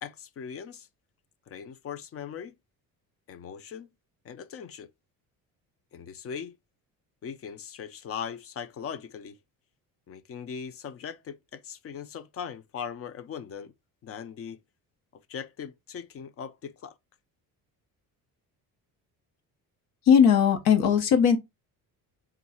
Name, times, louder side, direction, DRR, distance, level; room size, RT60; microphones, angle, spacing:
voice 1, 0.0-0.9 1.5-2.6 3.3-3.9 4.2-4.9 5.9-6.6 7.2-9.4 10.1-13.7 14.0-14.6 15.3-17.0, left 7 dB, 40° left, 0.4 m, -39 dB
voice 2, 20.0-21.4, left 7 dB, 80° left, 0.9 m, -19 dB
3.6 x 2.3 x 4.2 m
cardioid pair, 110°, 38 cm